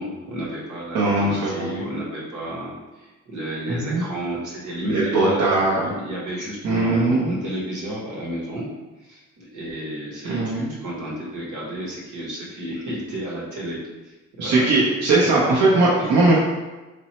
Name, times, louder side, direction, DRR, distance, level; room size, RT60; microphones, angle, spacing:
voice 1, 0.0-8.7 9.0-13.8 14.0-14.7 15.2-15.3 15.7-16.1, right 1 dB, 80° right, -5 dB, 1.3 m, -32 dB
voice 2, 0.9-1.8 3.7-4.0 4.9-5.9 6.6-7.3 10.2-10.7 14.4-16.4, right 2 dB, 60° right, -6 dB, 0.9 m, -20 dB
3.1 x 2.6 x 4.2 m, 1.1 s
cardioid pair, 90°, 30 cm